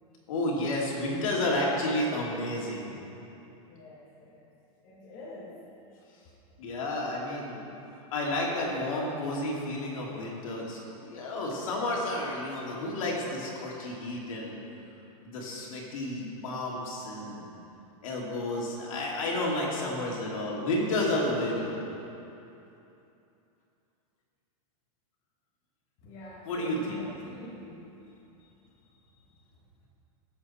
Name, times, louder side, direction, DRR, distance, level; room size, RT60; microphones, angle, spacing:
voice 1, 0.3-2.9 6.6-7.6 8.1-14.6 15.2-17.4 18.0-21.8 26.5-27.0, left 1 dB, 60° left, -3 dB, 2.6 m, -31 dB
voice 2, 3.6-4.5 4.8-5.6 26.0-27.9, left 1 dB, 25° left, -7 dB, 1.6 m, -45 dB
16.5 x 7.9 x 4.3 m, 2.9 s
supercardioid pair, 180°, 19 cm